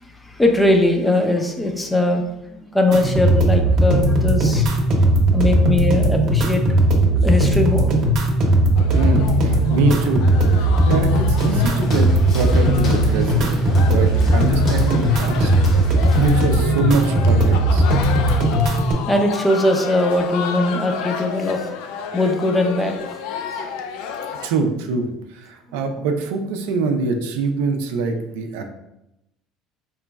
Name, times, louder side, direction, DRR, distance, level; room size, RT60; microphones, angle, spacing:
voice 1, 0.2-4.7 5.3-6.6 7.1-7.9 19.1-21.6 22.1-23.0, left 1 dB, 10° left, 4 dB, 0.5 m, -20 dB
sound 1, 2.9-18.9, right 1 dB, 60° right, 0.8 m, -17 dB
sound 2, 8.7-24.5, left 6 dB, 75° left, 0.4 m, -31 dB
voice 2, 8.9-10.3 10.5-15.5 15.8-17.8 24.4-28.6, right 4 dB, 85° right, 5 dB, 0.4 m, -24 dB
Walk footsteps, 11.3-16.6, left 1 dB, 50° left, 1.1 m, -34 dB
3.9 x 3.0 x 2.3 m, 0.86 s
supercardioid pair, 95°, 0 cm